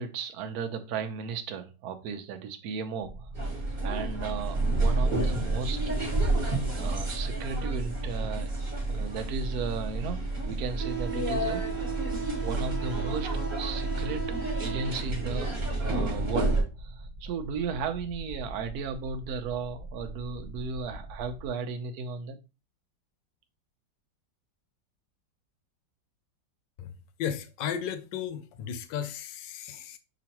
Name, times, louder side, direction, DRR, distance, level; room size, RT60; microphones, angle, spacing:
voice 1, 0.0-3.5 3.8-5.8 6.5-8.5 8.9-12.1 12.4-22.4, right 5 dB, 65° right, 1.1 m, -35 dB
sound 1, 3.0-21.5, equal, 45° right, 1.4 m, -43 dB
sound 2, 3.3-16.6, right 2 dB, 25° right, 1.5 m, -29 dB
voice 2, 26.8-30.0, left 8 dB, 75° left, 1.3 m, -35 dB
6.1 x 3.0 x 2.9 m
omnidirectional pair, 2.0 m